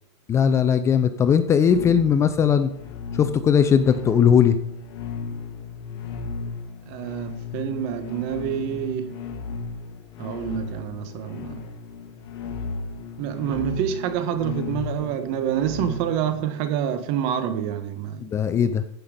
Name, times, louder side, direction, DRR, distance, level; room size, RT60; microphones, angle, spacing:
voice 1, 0.3-2.7 3.2-4.6 18.2-18.8, left 7 dB, 20° left, 0.6 m, -19 dB
sound 1, 1.6-16.5, left 5 dB, 50° left, 2.0 m, -35 dB
voice 2, 6.9-9.2 10.2-11.6 13.2-18.2, right 9 dB, 45° right, 1.4 m, -27 dB
14.5 x 5.7 x 5.2 m
supercardioid pair, 145°, 16 cm